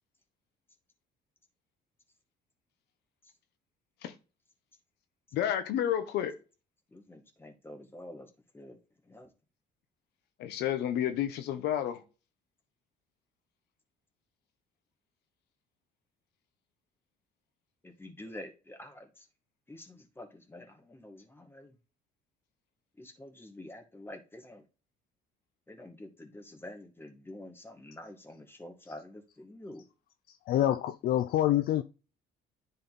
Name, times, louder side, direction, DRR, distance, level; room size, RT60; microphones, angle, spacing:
voice 1, 5.3-6.3 10.4-12.0, left 10 dB, 80° left, 1.2 m, -30 dB
voice 2, 6.9-8.8 9.0-9.3 17.8-19.3 19.7-21.7 23.0-24.6 25.7-29.8, left 1 dB, 15° left, 1.9 m, -48 dB
voice 3, 30.5-31.8, left 12 dB, 65° left, 0.5 m, -26 dB
10.0 x 4.2 x 4.1 m
cardioid pair, 110°, 17 cm